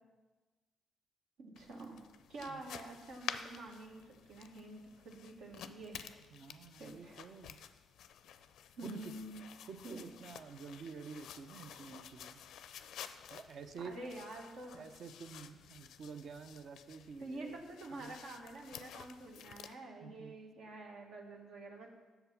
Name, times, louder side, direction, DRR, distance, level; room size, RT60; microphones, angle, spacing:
voice 1, 1.4-6.1 6.8-7.2 8.8-9.4 9.8-10.1 13.8-14.8 17.2-21.9, right 2 dB, 80° right, 0 dB, 1.6 m, -48 dB
sound 1, 1.6-19.7, left 9 dB, 80° left, 0.4 m, -51 dB
voice 2, 6.3-7.6 8.8-9.1 9.7-12.4 13.3-13.9 14.7-17.6 18.0-18.2 20.0-20.4, right 5 dB, 60° right, 8 dB, 0.7 m, -49 dB
8.0 x 6.8 x 5.8 m, 1.2 s
cardioid pair, 90°, 0 cm